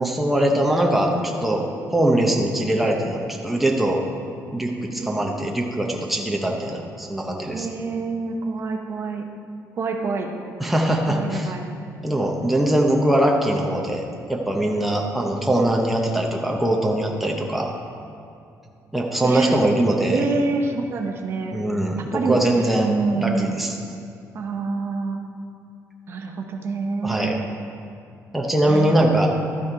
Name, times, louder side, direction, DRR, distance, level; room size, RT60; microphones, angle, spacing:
voice 1, 0.0-1.7 1.9-4.0 4.5-7.7 10.6-11.5 12.0-17.7 18.9-20.2 21.5-22.9 23.1-23.7 27.0-27.3 28.3-29.3, right 1 dB, ahead, 0 dB, 0.7 m, -22 dB
voice 2, 4.9-5.4 7.5-9.2 9.8-10.3 11.1-11.6 19.2-19.5 20.1-21.6 22.0-22.4 22.8-23.6 24.3-25.2 26.1-27.4 28.6-29.0, right 4 dB, 40° right, 4 dB, 0.7 m, -27 dB
12.5 x 6.2 x 4.6 m, 2.5 s
cardioid pair, 170°, 6 cm